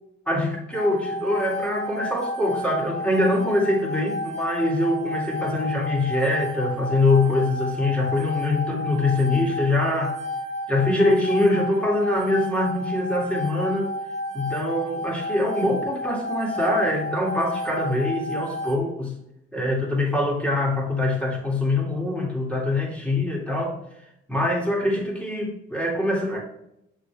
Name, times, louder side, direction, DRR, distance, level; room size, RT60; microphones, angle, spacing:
voice 1, 0.3-10.2 10.7-13.9 14.3-19.2 19.5-23.8 24.3-26.4, left 2 dB, 5° left, -2 dB, 2.2 m, -24 dB
sound 1, 0.7-18.8, left 1 dB, 35° right, 1.0 m, -31 dB
6.7 x 4.9 x 3.4 m, 0.81 s
cardioid pair, 90°, 20 cm